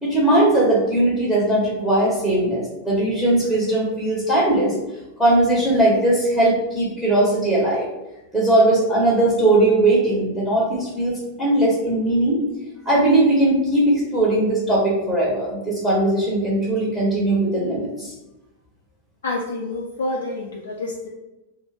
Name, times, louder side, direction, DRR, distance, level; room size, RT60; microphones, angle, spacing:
voice 1, 0.0-4.7 5.2-7.9 8.3-12.4 12.8-18.1, right 1 dB, 5° right, -7 dB, 0.9 m, -19 dB
voice 2, 19.2-21.1, left 2 dB, 65° left, 0 dB, 0.3 m, -28 dB
2.4 x 2.4 x 3.3 m, 0.97 s
figure-of-eight pair, 90°, 0 cm